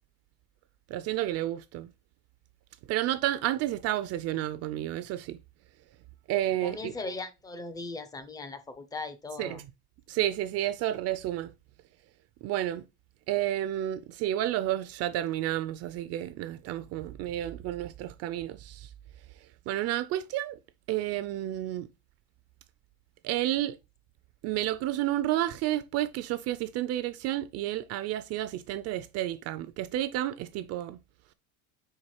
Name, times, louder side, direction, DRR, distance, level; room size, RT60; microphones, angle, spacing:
voice 1, 0.9-1.9 2.9-5.4 6.3-6.9 9.4-9.6 10.1-11.5 12.4-12.9 13.3-18.9 19.7-20.6 20.9-21.9 23.2-23.8 24.4-31.0, right 13 dB, 45° right, 0.4 m, -31 dB
voice 2, 6.6-9.6, left 3 dB, 10° left, 0.5 m, -38 dB
4.7 x 4.4 x 4.7 m
cardioid pair, 160°, 34 cm